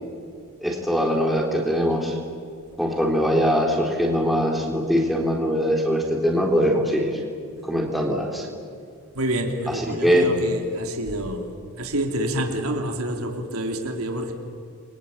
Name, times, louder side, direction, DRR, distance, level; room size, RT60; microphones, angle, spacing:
voice 1, 0.6-2.2 2.8-7.2 7.6-8.5 9.9-10.3, equal, ahead, -1 dB, 3.6 m, -22 dB
voice 2, 9.1-14.3, right 1 dB, 80° right, 4 dB, 3.3 m, -28 dB
29.0 x 23.0 x 8.5 m, 2.4 s
head